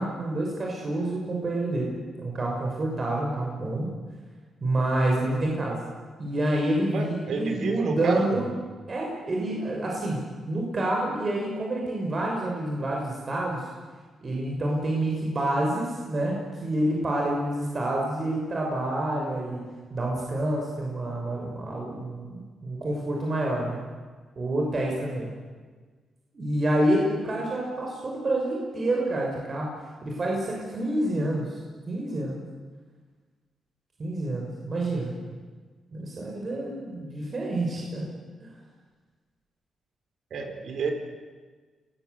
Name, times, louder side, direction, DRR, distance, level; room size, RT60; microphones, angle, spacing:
voice 1, 0.0-3.9 4.6-5.8 6.2-8.5 8.9-13.7 14.2-19.6 19.9-23.8 24.3-25.3 26.3-29.7 30.0-31.6 31.9-32.4 34.0-35.1 35.9-38.1 38.4-38.5, right 1 dB, 40° right, -1 dB, 6.4 m, -28 dB
voice 2, 6.9-8.4 40.3-40.9, right 5 dB, 70° right, 6 dB, 4.4 m, -30 dB
28.5 x 19.5 x 8.1 m, 1.4 s
cardioid pair, 95°, 0 cm